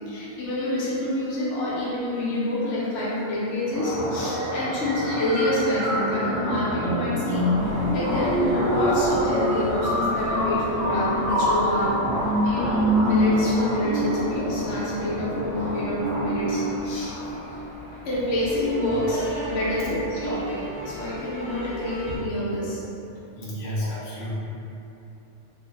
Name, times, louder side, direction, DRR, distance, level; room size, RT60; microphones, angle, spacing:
voice 1, 0.0-12.0 12.4-17.1 18.0-22.8 23.6-24.0, left 1 dB, 80° left, -7 dB, 0.9 m, -27 dB
sound 1, 3.7-17.7, equal, 60° right, 0.7 m, -25 dB
sound 2, 7.5-22.2, right 1 dB, 25° right, 0.9 m, -39 dB
voice 2, 23.1-24.4, left 1 dB, 55° left, -8 dB, 0.7 m, -31 dB
2.4 x 2.0 x 2.7 m, 2.9 s
omnidirectional pair, 1.2 m